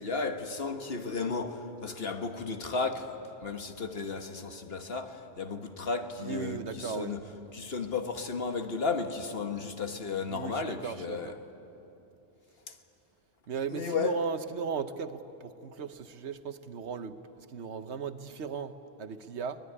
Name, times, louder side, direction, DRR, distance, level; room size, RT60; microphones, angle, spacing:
voice 1, 0.0-3.1 3.4-11.4 12.7-12.8 13.7-14.2, left 4 dB, 60° left, 1.6 m, -34 dB
voice 2, 6.2-7.1 10.3-11.4 13.5-19.6, right 6 dB, 80° right, 1.2 m, -37 dB
24.0 x 19.0 x 9.9 m
omnidirectional pair, 1.1 m